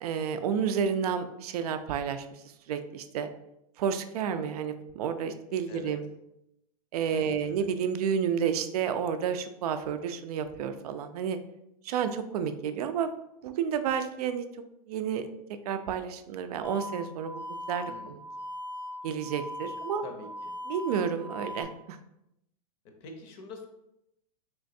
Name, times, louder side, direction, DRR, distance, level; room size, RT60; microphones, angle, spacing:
voice 1, 0.0-2.3 2.7-3.3 3.8-6.1 6.9-11.4 11.8-13.1 13.4-14.5 14.9-15.3 15.7-18.2 19.0-20.0 20.7-22.0, right 7 dB, 70° right, 9 dB, 0.4 m, -30 dB
voice 2, 7.1-7.7 17.9-18.2 20.0-20.5 23.0-23.7, left 4 dB, 40° left, 4 dB, 0.6 m, -45 dB
sound 1, 16.6-21.6, left 1 dB, 5° right, 0.4 m, -40 dB
3.3 x 3.0 x 2.6 m, 0.82 s
supercardioid pair, 145°, 20 cm